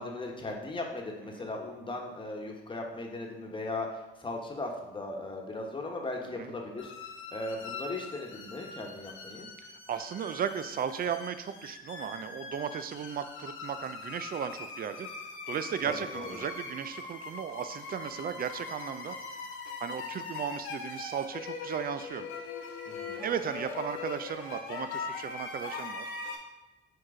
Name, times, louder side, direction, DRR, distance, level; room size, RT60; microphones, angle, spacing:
voice 1, 0.0-3.9 4.2-6.9 7.3-9.5 15.8-16.4 22.9-23.2, left 2 dB, 25° left, 1 dB, 1.3 m, -38 dB
sound 1, 6.8-26.4, left 4 dB, 85° left, 1.1 m, -41 dB
voice 2, 9.9-15.1 15.5-19.2 19.8-22.3 23.2-26.1, right 8 dB, 50° right, 11 dB, 0.5 m, -35 dB
4.7 x 4.6 x 4.9 m, 1.1 s
cardioid pair, 90°, 20 cm